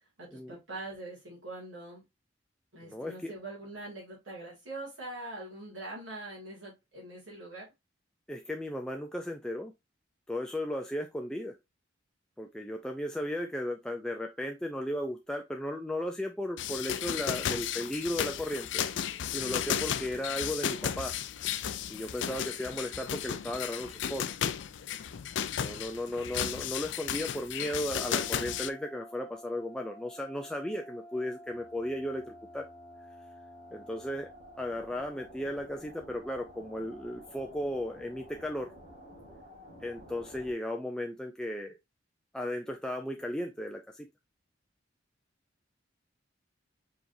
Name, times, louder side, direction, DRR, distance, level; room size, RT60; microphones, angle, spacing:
voice 1, 0.2-2.0 2.7-7.7, right 2 dB, 90° right, -5 dB, 2.4 m, -43 dB
voice 2, 2.8-3.3 8.3-9.7 10.3-11.5 12.4-18.8 19.3-21.1 21.9-24.3 25.6-32.7 33.7-34.3 34.6-38.7 39.8-41.8 42.3-44.1, left 1 dB, 5° left, 2 dB, 0.4 m, -35 dB
sound 1, 16.6-28.7, left 9 dB, 65° left, 0.4 m, -34 dB
sound 2, 28.1-40.5, equal, 35° right, 2.0 m, -51 dB
4.9 x 4.0 x 2.6 m, 0.21 s
head